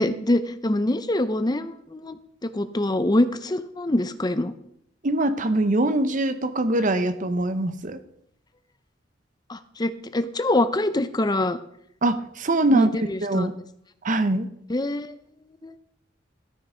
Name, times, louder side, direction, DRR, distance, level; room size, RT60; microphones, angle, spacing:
voice 1, 0.0-4.5 9.5-11.6 12.7-13.5 14.7-15.1 15.6-15.7, left 1 dB, 20° left, 12 dB, 0.6 m, -24 dB
voice 2, 5.0-8.0 12.0-12.9 13.2-13.5 14.0-14.5, right 1 dB, 40° right, 12 dB, 0.7 m, -23 dB
13.0 x 6.1 x 4.9 m, 0.73 s
head